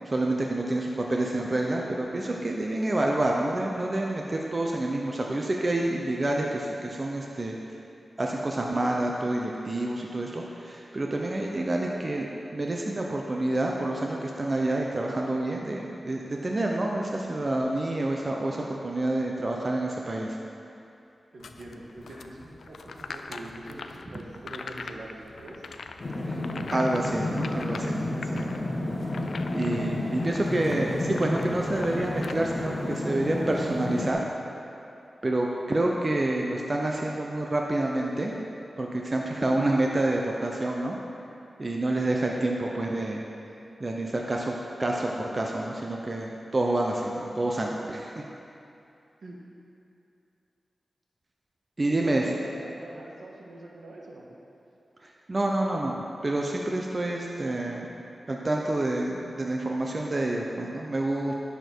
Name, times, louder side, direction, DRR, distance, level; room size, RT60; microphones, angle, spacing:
voice 1, 0.1-7.6 8.2-20.4 26.2-26.4 26.7-28.5 29.5-34.2 35.2-38.3 38.8-41.0 41.6-43.2 43.8-48.2 51.8-52.2 55.0-57.9 58.3-61.3, right 1 dB, 35° right, -1 dB, 0.7 m, -28 dB
voice 2, 21.3-25.7 49.2-49.4 52.0-54.3, right 1 dB, 75° right, -3 dB, 1.4 m, -44 dB
sound 1, 21.4-32.3, left 4 dB, 80° left, 0.4 m, -43 dB
sound 2, 26.0-34.1, left 1 dB, 45° left, 1.2 m, -31 dB
10.5 x 6.8 x 4.5 m, 2.7 s
wide cardioid pair, 95°, 0 cm